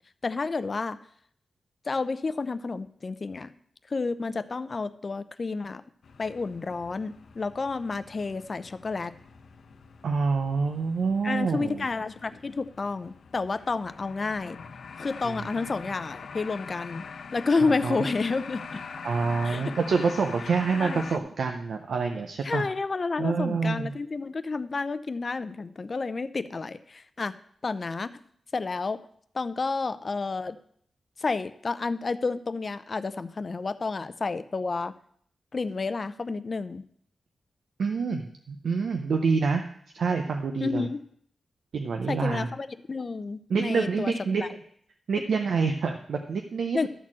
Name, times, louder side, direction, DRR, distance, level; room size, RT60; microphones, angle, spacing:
voice 1, 0.2-1.0 1.8-3.5 3.9-5.8 6.2-9.1 11.2-14.6 15.0-17.1 17.3-18.8 19.4-19.8 20.8-21.0 22.4-27.4 27.6-28.2 28.5-29.0 29.3-30.6 31.2-34.9 35.5-36.9 40.6-41.0 42.1-44.1 44.4-44.5 46.7-46.9, left 4 dB, 35° left, 13 dB, 0.5 m, -30 dB
sound 1, 6.0-21.2, left 5 dB, 65° left, 0.7 m, -43 dB
voice 2, 10.0-11.8 17.8-18.1 19.0-22.6 23.2-23.9 37.8-39.6 39.9-40.9 41.7-42.5 43.5-44.5 45.1-46.9, right 5 dB, 70° right, 4 dB, 0.7 m, -27 dB
12.0 x 4.3 x 7.4 m, 0.64 s
wide cardioid pair, 135°, 0 cm